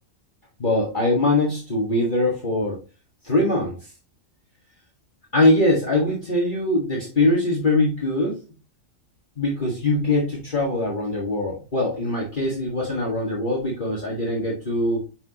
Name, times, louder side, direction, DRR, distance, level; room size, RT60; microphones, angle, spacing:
voice 1, 0.6-2.8 3.2-3.9 5.3-8.4 9.4-15.1, left 2 dB, 40° left, -3 dB, 1.9 m, -22 dB
7.0 x 5.9 x 2.9 m, 0.31 s
omnidirectional pair, 1.3 m